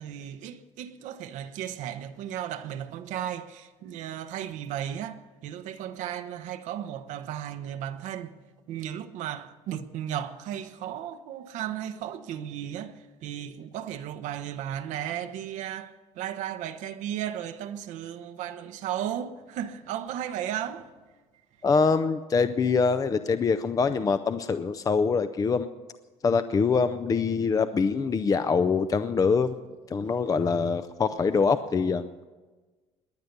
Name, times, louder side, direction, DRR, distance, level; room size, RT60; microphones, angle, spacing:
voice 1, 0.0-8.3 8.7-20.9, right 10 dB, 80° right, 1.0 m, -35 dB
voice 2, 21.6-25.7 26.2-29.6 29.9-32.1, left 5 dB, 30° left, 0.6 m, -24 dB
21.5 x 9.4 x 6.8 m
cardioid pair, 115°, 12 cm